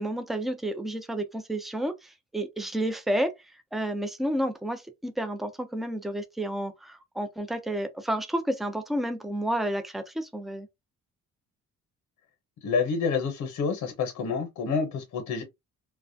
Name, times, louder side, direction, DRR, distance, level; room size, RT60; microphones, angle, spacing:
voice 1, 0.0-3.3 3.7-10.7, right 1 dB, ahead, 0.4 m, -30 dB
voice 2, 12.6-15.4, left 5 dB, 70° left, 0.8 m, -28 dB
2.3 x 2.1 x 2.6 m
cardioid pair, 90°, 30 cm